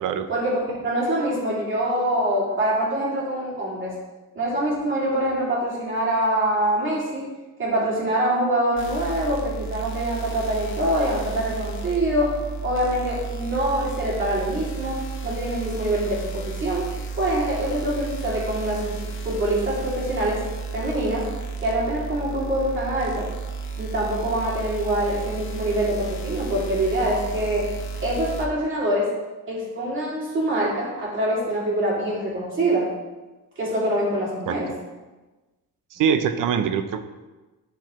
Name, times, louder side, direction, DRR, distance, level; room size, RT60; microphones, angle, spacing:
voice 1, 0.3-3.9 4.3-7.2 7.6-12.3 12.6-16.8 17.2-20.4 20.7-21.3 21.6-23.3 23.8-27.7 28.0-29.1 29.5-32.9 33.6-34.7, right 1 dB, 35° right, -5 dB, 2.6 m, -25 dB
sound 1, 8.8-28.5, right 4 dB, 35° left, 0.8 m, -33 dB
voice 2, 35.9-37.0, right 7 dB, 65° right, 10 dB, 0.6 m, -23 dB
11.5 x 4.7 x 3.1 m, 1.2 s
cardioid pair, 155°, 35 cm